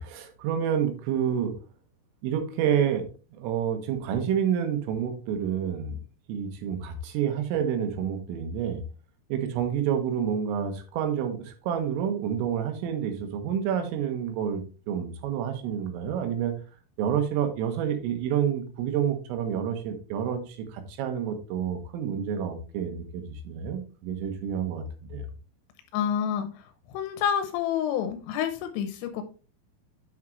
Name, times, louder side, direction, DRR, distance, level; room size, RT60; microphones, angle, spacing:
voice 1, 0.0-1.5 2.2-3.1 3.3-6.0 6.3-8.8 9.3-16.5 17.0-24.9 25.1-25.3, right 8 dB, 85° right, 6 dB, 3.8 m, -28 dB
voice 2, 25.9-26.6 26.9-29.2, left 8 dB, 90° left, 8 dB, 3.4 m, -28 dB
8.1 x 6.1 x 3.1 m, 0.34 s
omnidirectional pair, 5.7 m